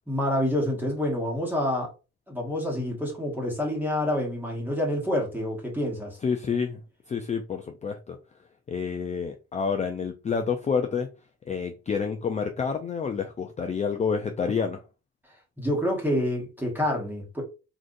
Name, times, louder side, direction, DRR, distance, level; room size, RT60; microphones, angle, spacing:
voice 1, 0.1-1.9 2.3-6.2 15.6-17.4, left 1 dB, 5° right, 1.1 m, -27 dB
voice 2, 6.2-6.8 7.1-8.2 8.7-11.1 11.5-14.8, left 6 dB, 25° left, 0.4 m, -28 dB
3.8 x 2.5 x 2.5 m
cardioid pair, 90°, 30 cm